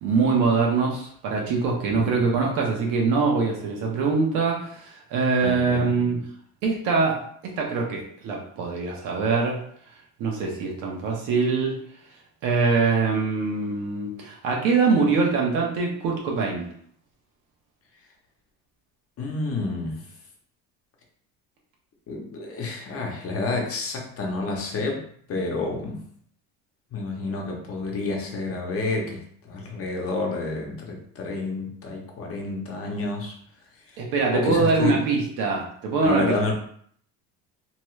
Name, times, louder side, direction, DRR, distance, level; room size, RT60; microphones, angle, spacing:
voice 1, 0.0-6.2 6.6-9.6 10.2-11.7 12.4-16.7 34.0-36.4, right 4 dB, 75° right, -1 dB, 1.0 m, -23 dB
voice 2, 5.4-5.9 19.2-20.0 22.1-26.0 26.9-33.3 34.3-35.0 36.0-36.5, left 3 dB, 40° left, 0 dB, 0.9 m, -29 dB
2.9 x 2.3 x 3.1 m, 0.62 s
cardioid pair, 115°, 34 cm